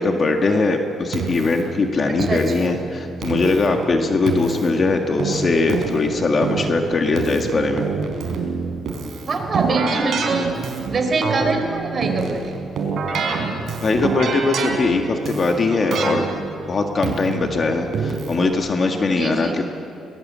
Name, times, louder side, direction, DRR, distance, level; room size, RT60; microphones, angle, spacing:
voice 1, 0.0-7.9 13.8-16.3 16.7-19.6, left 3 dB, 40° left, 4 dB, 1.8 m, -20 dB
Keyboard (musical), 1.1-18.5, right 4 dB, 65° right, 4.3 m, -27 dB
voice 2, 2.1-2.7 9.3-10.5 10.9-12.5 19.0-19.5, right 3 dB, 40° right, 4 dB, 4.3 m, -24 dB
22.0 x 19.5 x 7.6 m, 2.7 s
cardioid pair, 90°, 0 cm